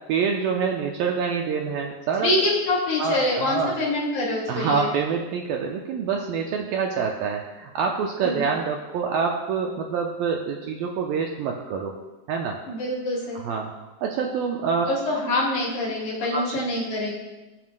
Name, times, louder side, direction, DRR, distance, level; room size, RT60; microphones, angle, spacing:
voice 1, 0.1-2.3 3.0-3.7 4.5-12.0 12.3-12.6 13.4-13.7 14.0-14.9 16.3-16.6, right 6 dB, 80° right, 1 dB, 2.2 m, -26 dB
voice 2, 2.2-4.9 8.2-8.5 12.7-13.4 14.9-17.1, left 2 dB, 50° left, -3 dB, 3.2 m, -25 dB
21.5 x 7.6 x 2.2 m, 1.1 s
omnidirectional pair, 4.7 m